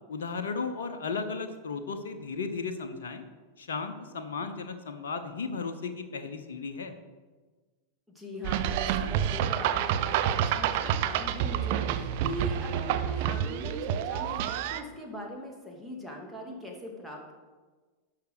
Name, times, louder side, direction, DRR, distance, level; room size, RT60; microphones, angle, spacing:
voice 1, 0.1-3.2 3.6-6.9, left 4 dB, 65° left, 7 dB, 0.8 m, -35 dB
voice 2, 8.1-17.3, left 1 dB, ahead, -1 dB, 2.5 m, -40 dB
sound 1, 8.4-14.8, right 10 dB, 50° right, 0.6 m, -28 dB
11.5 x 5.8 x 6.6 m, 1.3 s
figure-of-eight pair, 90°, 0 cm